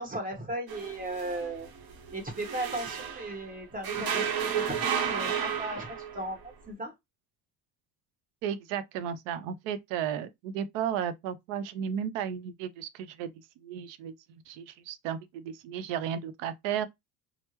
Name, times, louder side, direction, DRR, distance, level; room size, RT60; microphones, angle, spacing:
voice 1, 0.0-1.7 2.1-6.4 6.7-6.9, right 2 dB, 20° right, 1.3 m, -36 dB
sound 1, 0.7-3.5 3.8-6.3, right 7 dB, 50° right, 0.8 m, -32 dB
voice 2, 8.4-13.3 13.6-14.1 14.5-16.9, right 8 dB, 85° right, 0.6 m, -34 dB
3.4 x 2.0 x 2.9 m
supercardioid pair, 90°, 46 cm